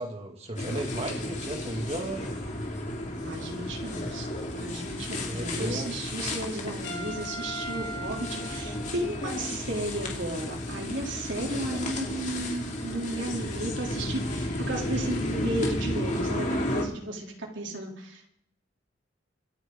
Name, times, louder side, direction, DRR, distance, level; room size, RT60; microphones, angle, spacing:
voice 1, 0.0-2.3 5.3-5.9, right 1 dB, 35° right, 2 dB, 2.5 m, -34 dB
sound 1, 0.6-16.8, left 1 dB, 40° left, 2.9 m, -33 dB
voice 2, 3.2-18.3, right 1 dB, 70° right, 0 dB, 3.6 m, -34 dB
Trumpet, 6.8-9.5, right 1 dB, 75° left, 3.5 m, -40 dB
25.5 x 10.0 x 4.0 m, 0.69 s
head